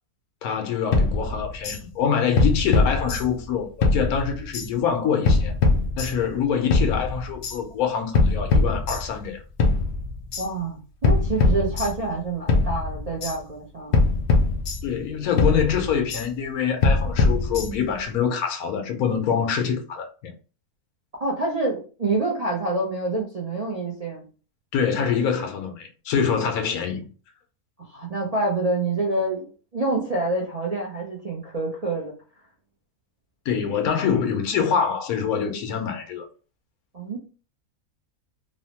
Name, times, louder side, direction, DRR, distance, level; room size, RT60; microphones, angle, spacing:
voice 1, 0.4-5.5 6.0-9.4 14.8-20.3 24.7-27.1 33.5-36.2, left 7 dB, 80° left, 1.1 m, -25 dB
sound 1, 0.9-1.8 2.4-3.5 3.8-4.7 5.2-6.3 6.7-7.6 8.1-9.3 9.6-10.5 11.0-12.2 12.5-13.3 13.9-15.1 15.4-16.2 16.8-18.0, left 3 dB, 65° left, 0.7 m, -22 dB
voice 2, 10.4-14.0 21.2-24.3 27.9-29.5 29.7-32.1 36.9-37.2, right 2 dB, 55° right, 0.4 m, -27 dB
3.0 x 2.0 x 2.8 m
omnidirectional pair, 1.5 m